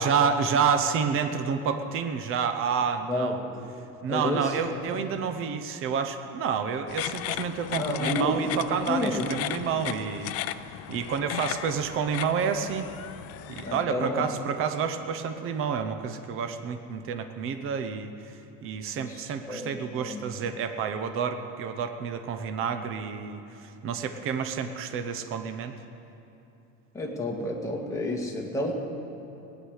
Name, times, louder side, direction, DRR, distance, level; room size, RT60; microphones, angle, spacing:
voice 1, 0.0-3.4 4.0-10.6 10.9-12.9 13.5-18.1 18.6-25.7, right 6 dB, 40° right, 8 dB, 0.8 m, -29 dB
voice 2, 3.1-3.8 4.1-5.0 7.8-8.5 8.9-9.3 13.6-14.3 19.0-20.2 26.9-28.7, left 1 dB, 10° left, -2 dB, 1.8 m, -31 dB
sound 1, 6.9-13.8, left 14 dB, 45° left, 0.5 m, -36 dB
19.0 x 9.7 x 6.5 m, 2.9 s
cardioid pair, 160°, 32 cm